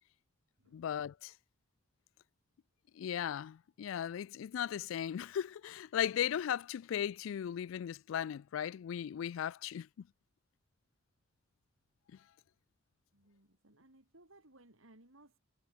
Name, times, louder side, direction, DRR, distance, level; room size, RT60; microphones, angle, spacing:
voice 1, 0.7-1.3 2.9-9.9, left 9 dB, 75° left, 0.3 m, -37 dB
voice 2, 13.1-15.4, right 2 dB, 80° right, 4.2 m, -62 dB
head